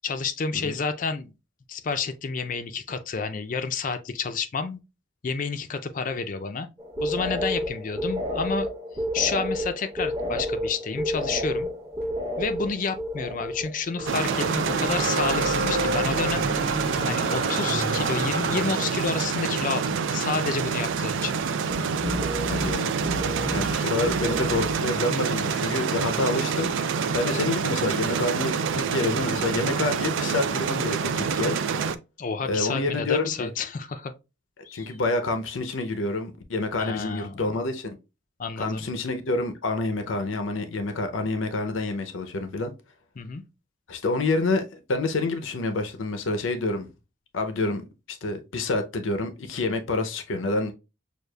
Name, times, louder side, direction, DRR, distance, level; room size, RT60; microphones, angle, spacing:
voice 1, 0.0-1.3 1.7-4.8 5.2-6.7 7.0-8.7 9.1-11.7 12.4-16.5 17.1-21.3 23.2-23.5 32.2-34.1 34.6-35.0 36.8-37.4 38.4-38.9 43.2-43.4, left 5 dB, 45° left, 0.4 m, -30 dB
sound 1, 6.8-15.7 16.0-16.7 17.0-17.7 18.0-18.4 21.7-24.9, left 1 dB, 20° right, 0.9 m, -32 dB
sound 2, 12.0-12.1 14.0-18.8, right 2 dB, 55° right, 1.1 m, -29 dB
sound 3, 14.1-32.0, right 6 dB, 80° right, 0.4 m, -27 dB
voice 2, 22.5-22.9 23.5-26.8 27.1-31.6 32.4-33.5 34.7-38.0 38.6-42.7 43.9-46.9 47.3-47.8 48.1-50.7, left 2 dB, 85° left, 0.6 m, -28 dB
6.4 x 2.4 x 2.2 m
head